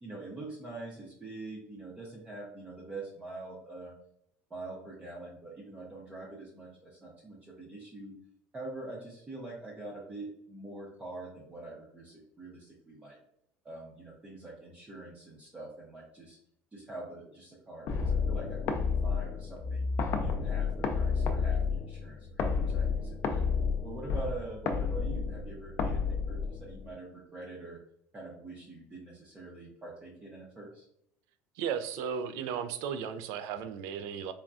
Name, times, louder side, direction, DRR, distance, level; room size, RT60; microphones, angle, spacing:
voice 1, 0.0-3.9 4.5-8.1 8.5-13.2 13.6-16.4 16.7-19.9 20.2-20.7 20.9-23.4 23.8-26.0 26.3-27.8 28.1-30.9, right 2 dB, 20° right, -5 dB, 0.7 m, -44 dB
sound 1, 17.9-26.9, left 5 dB, 45° left, 0.4 m, -31 dB
voice 2, 31.6-34.3, right 7 dB, 75° right, 10 dB, 0.3 m, -35 dB
3.4 x 2.2 x 2.5 m, 0.73 s
supercardioid pair, 115°, 6 cm